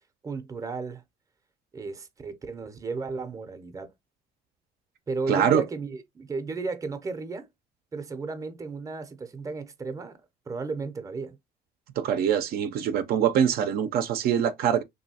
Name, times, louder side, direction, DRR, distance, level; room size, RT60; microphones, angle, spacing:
voice 1, 0.2-1.0 1.7-3.9 5.1-7.5 7.9-10.2 10.5-11.4, right 4 dB, 20° right, 0.6 m, -34 dB
voice 2, 5.3-5.6 12.0-14.8, right 9 dB, 65° right, 0.5 m, -24 dB
3.1 x 2.7 x 2.7 m
cardioid pair, 110°, 17 cm